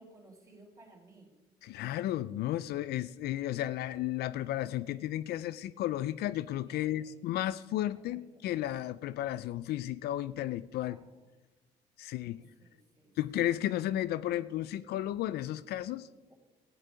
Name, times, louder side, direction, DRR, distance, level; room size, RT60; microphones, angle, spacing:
voice 1, 0.0-1.3 6.7-7.2 7.9-8.3 10.7-11.3 12.2-13.2 16.3-16.4, right 2 dB, 20° right, 0 dB, 3.5 m, -58 dB
voice 2, 1.6-11.0 12.0-12.4 13.2-16.1, left 13 dB, 70° left, 16 dB, 0.4 m, -33 dB
14.5 x 8.1 x 5.1 m, 1.2 s
cardioid pair, 110°, 17 cm